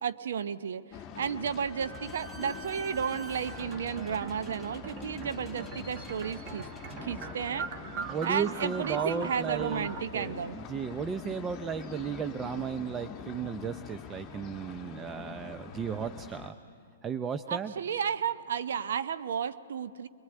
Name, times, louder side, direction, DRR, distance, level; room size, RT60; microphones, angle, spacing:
voice 1, 0.0-6.7 7.0-7.7 8.2-10.6 17.5-20.1, right 7 dB, 65° right, 12 dB, 0.8 m, -33 dB
sound 1, 0.9-16.5, left 7 dB, 25° left, 1.4 m, -45 dB
Slam / Squeak, 1.5-8.8, right 1 dB, ahead, 1.3 m, -48 dB
sound 2, 3.3-10.0, right 5 dB, 35° right, 1.8 m, -41 dB
voice 2, 8.0-16.5 17.0-17.7, right 7 dB, 20° right, 10 dB, 0.6 m, -35 dB
23.0 x 21.0 x 9.1 m, 2.3 s
figure-of-eight pair, 120°, 0 cm